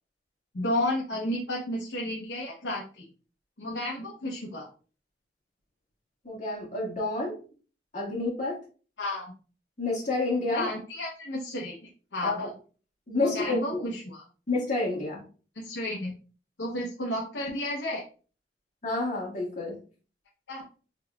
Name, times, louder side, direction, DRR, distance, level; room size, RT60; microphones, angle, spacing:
voice 1, 0.5-3.1 3.6-4.7 9.0-9.3 10.5-11.8 12.1-12.5 13.3-14.2 15.5-16.2 16.6-18.0 20.5-20.7, left 1 dB, 85° left, -2 dB, 0.8 m, -32 dB
voice 2, 6.2-7.4 7.9-8.6 9.8-10.7 12.2-12.5 13.1-13.8 14.5-15.2 18.8-19.8, left 2 dB, 45° left, -3 dB, 1.7 m, -29 dB
3.8 x 3.7 x 2.3 m, 0.38 s
head